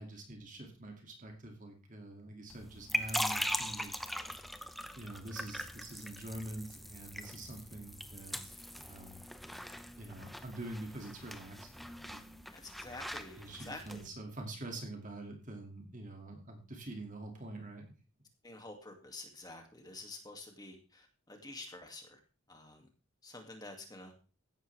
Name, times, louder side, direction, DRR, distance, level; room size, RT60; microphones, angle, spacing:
voice 1, 0.0-4.0 4.9-9.2 10.0-12.2 13.4-17.8, right 1 dB, 35° right, 2 dB, 2.4 m, -46 dB
sound 1, 2.5-14.1, equal, ahead, 0.8 m, -41 dB
voice 2, 12.5-14.0 18.4-22.2 22.5-22.9 23.2-24.1, left 2 dB, 20° left, 3 dB, 2.3 m, -49 dB
15.5 x 12.0 x 3.5 m, 0.35 s
head